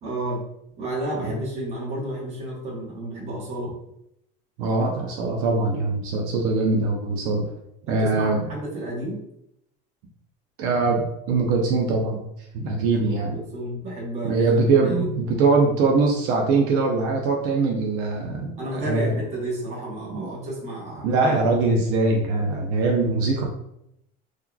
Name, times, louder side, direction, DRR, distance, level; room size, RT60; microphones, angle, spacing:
voice 1, 0.0-0.4 0.8-3.7 7.9-9.2 12.6-15.1 18.6-21.4, right 1 dB, 35° right, -3 dB, 1.0 m, -31 dB
voice 2, 4.6-7.5 7.9-8.5 10.6-12.3 12.5-13.3 14.2-19.1 20.2-20.3 21.0-23.4, right 3 dB, 75° right, 0 dB, 0.6 m, -22 dB
3.8 x 3.1 x 2.2 m, 0.78 s
cardioid pair, 180°, 20 cm